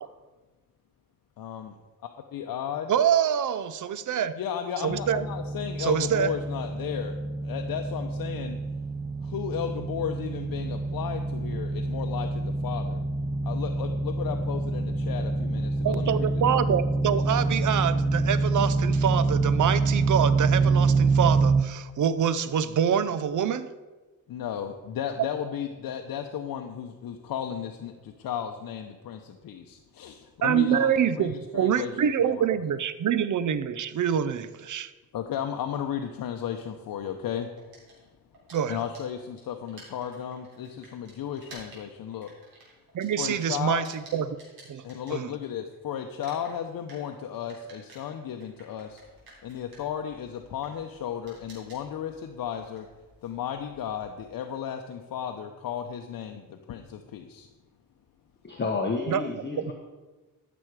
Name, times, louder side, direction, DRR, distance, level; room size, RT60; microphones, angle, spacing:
voice 1, 1.4-1.7 2.0-2.9 4.4-7.2 7.4-8.6 9.2-13.0 13.4-16.3 24.3-31.9 32.2-32.5 35.1-37.5 38.7-42.3 43.2-43.8 44.8-49.0 49.4-52.9 53.2-57.5, left 9 dB, 75° left, 5 dB, 0.7 m, -34 dB
voice 2, 2.9-4.4 4.8-5.2 5.8-6.3 15.8-23.7 30.4-34.9 38.5-38.8 42.9-43.8 44.1-44.3 44.7-44.8 45.1-45.3 59.1-59.2, right 8 dB, 60° right, 15 dB, 0.6 m, -25 dB
sound 1, 4.9-21.6, right 3 dB, 15° right, 0.4 m, -26 dB
sound 2, 37.6-45.7 46.0-54.3, right 2 dB, 85° right, 3.8 m, -53 dB
voice 3, 58.4-59.7, left 4 dB, 30° left, 2 dB, 1.1 m, -30 dB
13.5 x 6.2 x 4.8 m, 1.2 s
cardioid pair, 110°, 35 cm